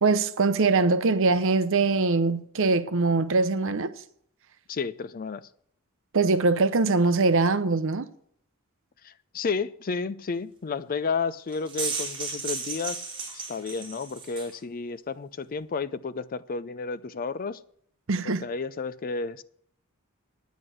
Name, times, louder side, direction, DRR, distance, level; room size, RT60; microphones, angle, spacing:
voice 1, 0.0-3.9 6.1-8.0 18.1-18.4, right 3 dB, 60° right, 0.7 m, -22 dB
voice 2, 4.7-5.5 9.0-13.0 13.3-17.6 18.2-19.4, left 4 dB, 40° left, 0.4 m, -32 dB
sound 1, 11.5-14.5, right 4 dB, 25° right, 4.0 m, -34 dB
9.7 x 9.3 x 6.3 m
head